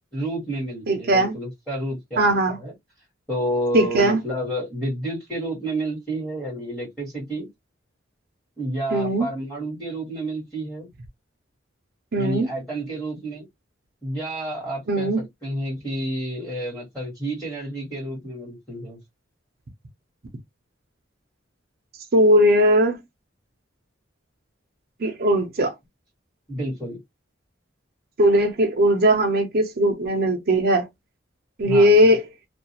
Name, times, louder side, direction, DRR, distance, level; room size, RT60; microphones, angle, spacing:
voice 1, 0.1-2.7 3.3-7.5 8.6-10.9 12.2-13.5 14.0-19.0 26.5-27.0 31.7-32.1, right 1 dB, 5° left, 1.3 m, -30 dB
voice 2, 0.9-1.3 2.2-2.6 3.7-4.2 8.9-9.3 12.1-12.5 14.9-15.2 22.1-23.0 25.0-25.7 28.2-30.9 31.6-32.2, equal, 55° right, 0.6 m, -19 dB
2.3 x 2.3 x 2.8 m
head